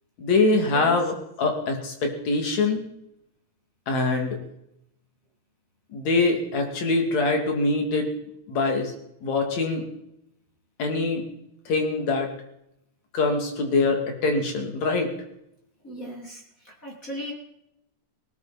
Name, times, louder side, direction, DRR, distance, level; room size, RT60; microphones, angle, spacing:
voice 1, 0.2-2.8 3.9-4.4 5.9-8.1 8.5-8.9 9.2-9.8 10.8-11.2 11.7-12.3 13.1-15.1, left 3 dB, 65° left, 3 dB, 3.8 m, -24 dB
voice 2, 15.8-17.3, equal, 25° left, -2 dB, 3.1 m, -38 dB
18.5 x 18.0 x 4.3 m, 0.80 s
omnidirectional pair, 3.4 m